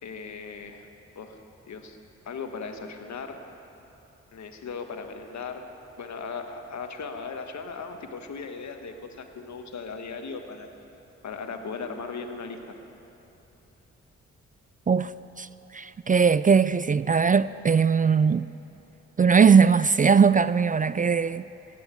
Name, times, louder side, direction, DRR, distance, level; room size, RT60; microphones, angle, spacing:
voice 1, 0.0-0.9 1.1-1.3 1.7-2.0 2.2-3.4 4.3-5.7 6.0-10.7 11.2-12.6, left 5 dB, 65° left, 1.4 m, -37 dB
voice 2, 15.4-18.5 19.2-21.4, right 6 dB, 30° right, 0.4 m, -20 dB
15.0 x 9.7 x 8.3 m
supercardioid pair, 50°, 30 cm